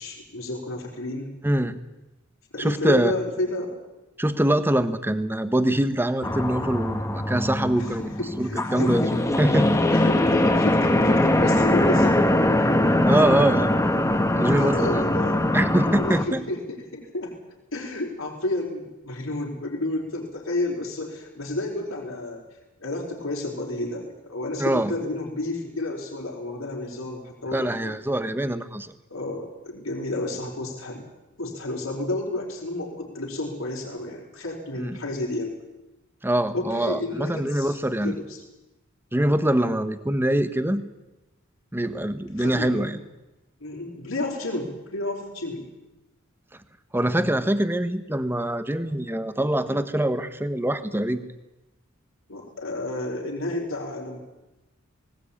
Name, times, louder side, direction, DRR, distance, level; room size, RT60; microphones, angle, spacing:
voice 1, 0.0-1.3 2.5-3.8 7.8-9.2 9.5-9.6 9.9-12.3 14.4-15.4 15.9-17.4 17.7-22.4 22.8-28.0 29.1-31.1 31.4-35.6 36.5-37.8 38.0-38.2 42.4-42.9 43.6-45.7 52.3-54.2, left 1 dB, 80° left, 0 dB, 4.6 m, -31 dB
voice 2, 1.4-1.8 2.6-3.2 4.2-8.1 8.4-9.0 9.4-9.8 12.6-12.7 13.1-13.7 14.3-15.0 15.5-16.4 24.6-24.9 27.5-28.9 34.8-35.0 36.2-38.2 39.1-40.8 41.7-43.0 46.9-51.3, right 1 dB, 10° right, 11 dB, 1.1 m, -24 dB
sound 1, 6.2-16.2, left 1 dB, 15° left, 1.5 m, -22 dB
19.0 x 18.5 x 8.7 m, 1.0 s
head